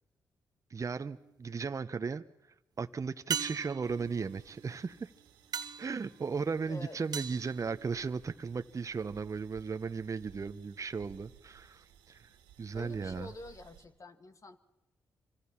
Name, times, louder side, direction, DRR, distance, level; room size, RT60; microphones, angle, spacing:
voice 1, 0.7-2.2 2.8-5.1 5.8-12.3 12.6-13.3, right 5 dB, 40° right, 10 dB, 1.0 m, -36 dB
sound 1, 1.0-1.6 3.3-8.5 12.9-13.0, right 7 dB, 60° right, 1.3 m, -41 dB
sound 2, 3.8-13.8, right 9 dB, 85° right, 2.1 m, -59 dB
voice 2, 6.7-7.0 12.7-14.6, left 2 dB, 45° left, 9 dB, 2.1 m, -47 dB
26.0 x 24.5 x 5.9 m, 0.91 s
hypercardioid pair, 40°, 8 cm